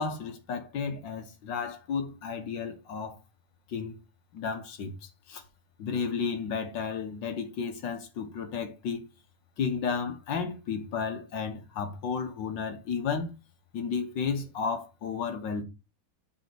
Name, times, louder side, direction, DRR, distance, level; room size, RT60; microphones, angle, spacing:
voice 1, 0.0-3.2 3.7-4.0 4.3-5.4 5.8-9.1 9.6-13.3 13.7-15.6, left 5 dB, 65° left, 1.7 m, -33 dB
7.2 x 4.2 x 6.0 m
omnidirectional pair, 2.3 m